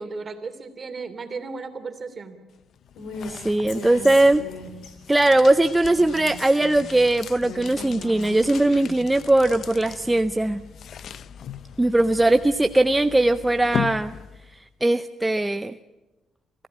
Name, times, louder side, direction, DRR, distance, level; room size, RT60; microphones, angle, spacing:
voice 1, 0.0-2.4, right 4 dB, 40° right, 7 dB, 3.0 m, -35 dB
sound 1, 2.5-14.7, left 8 dB, 65° left, 0.7 m, -38 dB
Female speech woman speaking, 3.0-3.3 3.7-4.9 5.8-6.9 7.4-9.1, left 2 dB, 85° left, 3.9 m, -38 dB
voice 2, 3.4-4.4 5.1-10.6 11.8-14.1 14.8-15.7, right 2 dB, 10° right, 9 dB, 0.6 m, -20 dB
26.0 x 15.5 x 8.8 m, 1.1 s
cardioid pair, 90°, 0 cm